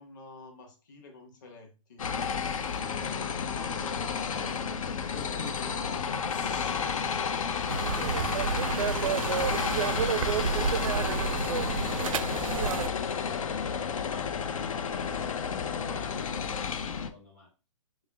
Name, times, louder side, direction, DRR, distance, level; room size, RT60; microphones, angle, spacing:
voice 1, 0.0-2.1 2.9-3.4 5.1-6.3, left 2 dB, 35° left, 1.0 m, -48 dB
sound 1, 2.0-17.1, left 6 dB, 80° left, 0.5 m, -31 dB
voice 2, 2.8-6.0 9.0-9.7 10.2-15.3 15.7-16.3 16.9-17.5, left 1 dB, ahead, 0.4 m, -49 dB
sound 2, 6.3-14.4, left 4 dB, 65° left, 1.0 m, -49 dB
sound 3, 7.7-12.9, right 7 dB, 75° right, 0.4 m, -30 dB
5.2 x 2.0 x 3.4 m
hypercardioid pair, 175°, 17 cm